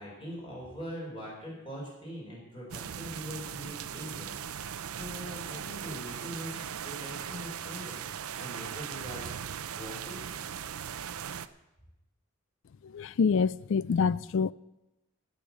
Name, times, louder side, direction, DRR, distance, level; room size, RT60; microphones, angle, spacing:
voice 1, 0.0-4.3 4.5-9.3 9.7-10.4, equal, 25° left, 4.6 m, -42 dB
sound 1, 2.7-11.5, right 8 dB, 75° right, 0.5 m, -39 dB
voice 2, 12.9-14.5, left 5 dB, 55° left, 0.3 m, -26 dB
15.5 x 6.6 x 7.3 m
head